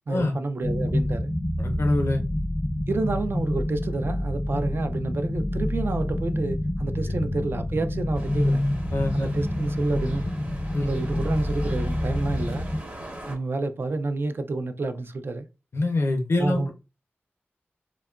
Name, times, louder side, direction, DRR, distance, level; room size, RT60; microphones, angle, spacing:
voice 1, 0.1-1.3 2.9-8.6 9.1-10.2 10.8-12.7 13.3-15.5 16.4-16.7, right 3 dB, 55° right, 0.3 m, -29 dB
sound 1, 0.6-12.8, left 1 dB, 30° left, 0.4 m, -27 dB
voice 2, 1.6-2.2 8.9-9.3 10.7-10.9 15.7-16.7, left 2 dB, 75° left, 0.6 m, -25 dB
sound 2, 8.1-13.4, right 1 dB, 35° right, 0.8 m, -41 dB
2.7 x 2.3 x 2.3 m
wide cardioid pair, 85°, 4 cm